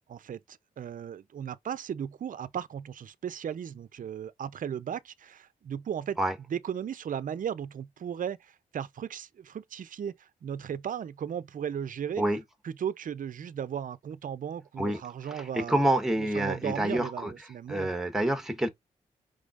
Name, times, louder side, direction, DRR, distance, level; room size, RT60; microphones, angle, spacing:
voice 1, 0.1-6.2 6.5-12.2 12.6-15.9 16.2-17.9, right 8 dB, 55° right, 0.5 m, -36 dB
voice 2, 15.3-17.3 17.7-18.7, right 1 dB, ahead, 1.3 m, -27 dB
5.0 x 3.7 x 2.4 m
supercardioid pair, 50°, 16 cm